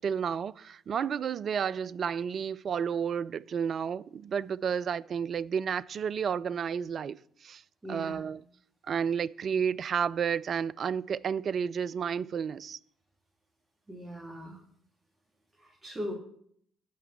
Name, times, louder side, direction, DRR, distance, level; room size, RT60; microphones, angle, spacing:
voice 1, 0.0-7.6 7.9-8.4 8.9-12.8, right 7 dB, 45° right, 0.3 m, -31 dB
voice 2, 7.8-8.2 13.9-14.6 15.6-16.1, equal, 15° right, 2.3 m, -39 dB
8.5 x 5.8 x 7.3 m
figure-of-eight pair, 45°, 0 cm